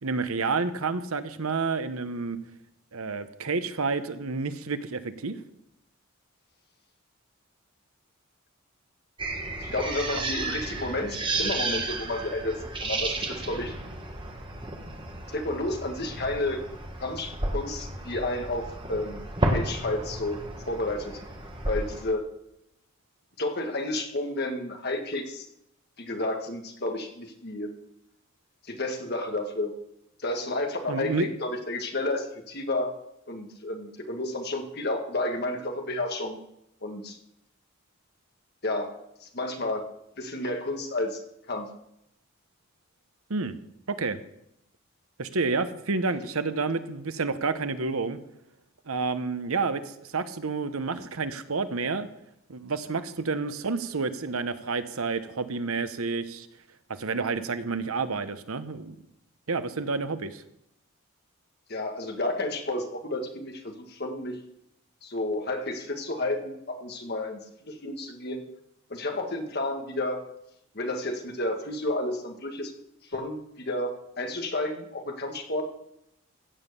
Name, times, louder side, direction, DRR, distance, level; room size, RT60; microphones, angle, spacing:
voice 1, 0.0-2.4 2.9-5.3 30.9-31.3 43.3-43.5 43.9-44.2 45.2-48.2 48.9-52.1 52.5-56.5 57.0-58.9 59.5-60.4, right 4 dB, 80° right, 11 dB, 1.0 m, -29 dB
sound 1, 9.2-22.0, right 2 dB, 25° right, 1.5 m, -33 dB
voice 2, 9.6-13.7 15.3-16.6 17.0-19.2 19.5-20.4 20.7-21.2 21.7-22.3 23.4-25.5 26.0-27.7 28.7-29.7 30.2-32.9 33.3-36.4 36.8-37.2 38.6-38.9 39.2-39.8 40.2-41.2 41.5-41.8 61.7-64.4 65.0-68.4 68.9-70.2 70.8-72.7 73.1-75.7, left 2 dB, 45° left, 4 dB, 1.7 m, -31 dB
15.5 x 7.4 x 6.8 m, 0.80 s
head